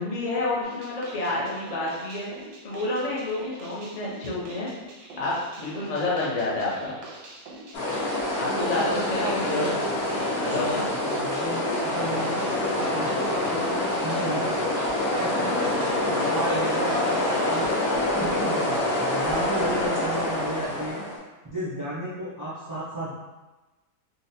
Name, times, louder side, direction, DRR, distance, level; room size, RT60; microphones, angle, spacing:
voice 1, 0.0-2.3 2.6-4.7 5.2-6.9 8.3-9.6 10.1-10.9, left 2 dB, 45° left, -7 dB, 0.5 m, -29 dB
sound 1, 0.6-17.9, right 2 dB, 85° right, 1.2 m, -44 dB
sound 2, 7.7-21.2, left 1 dB, 75° left, 1.3 m, -26 dB
voice 2, 8.4-9.9 11.1-14.6 15.0-21.0 21.4-23.1, right 1 dB, 30° right, -10 dB, 0.3 m, -33 dB
3.9 x 2.1 x 2.6 m, 1.1 s
omnidirectional pair, 1.7 m